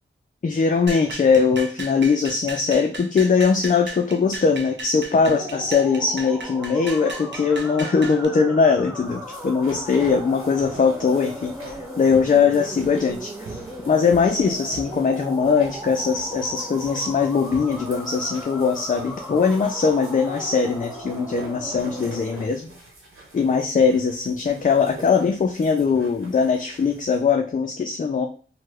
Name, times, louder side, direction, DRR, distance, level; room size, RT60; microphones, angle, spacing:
voice 1, 0.4-13.6 13.9-22.7 23.3-28.3, left 5 dB, 40° left, 4 dB, 0.4 m, -21 dB
sound 1, 0.9-8.2, right 2 dB, 60° right, 0.6 m, -36 dB
sound 2, 5.2-22.5, equal, 5° right, 0.7 m, -37 dB
sound 3, 8.8-27.2, right 2 dB, 80° right, 1.0 m, -44 dB
3.0 x 2.2 x 3.4 m, 0.40 s
cardioid pair, 55°, 21 cm